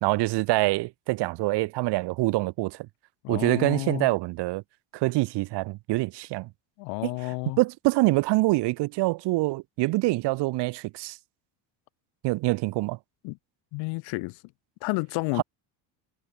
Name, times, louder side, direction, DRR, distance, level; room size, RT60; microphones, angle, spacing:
voice 1, 0.0-2.9 3.3-4.6 4.9-6.5 7.0-11.2 12.2-13.0 15.4-15.5, right 21 dB, 60° right, 0.8 m, -25 dB
voice 2, 3.2-4.1 6.8-7.6 13.2-13.4 13.7-14.4 14.8-15.4, left 26 dB, 80° left, 0.8 m, -30 dB
cardioid pair, 150°, 46 cm